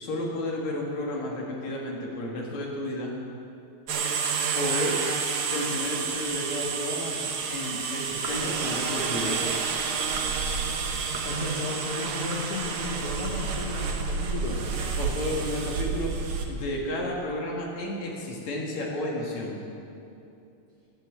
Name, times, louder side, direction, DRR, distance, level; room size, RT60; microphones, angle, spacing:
voice 1, 0.0-3.1 4.6-5.0 5.5-7.2 7.5-9.4 15.0-19.6, left 1 dB, 70° left, -2 dB, 3.3 m, -32 dB
sound 1, 3.9-16.5, right 5 dB, 60° right, 1.6 m, -29 dB
voice 2, 11.2-14.6, left 2 dB, 50° left, -6 dB, 2.3 m, -34 dB
13.0 x 9.4 x 7.7 m, 2.7 s
omnidirectional pair, 3.4 m